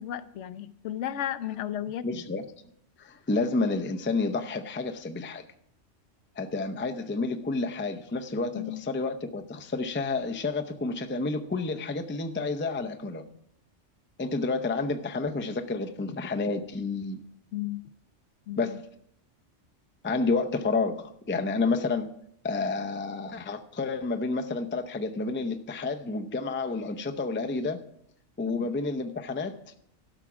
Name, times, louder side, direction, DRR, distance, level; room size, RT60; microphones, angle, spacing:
voice 1, 0.0-2.2 8.5-8.8 17.5-17.8 18.5-18.8 28.5-28.6, left 11 dB, 75° left, 0.9 m, -34 dB
voice 2, 2.0-2.4 3.0-5.4 6.4-13.3 14.2-17.2 18.6-18.8 20.0-22.1 22.4-27.8 28.4-29.6, left 3 dB, 15° left, 0.4 m, -30 dB
13.0 x 5.9 x 6.1 m
omnidirectional pair, 1.3 m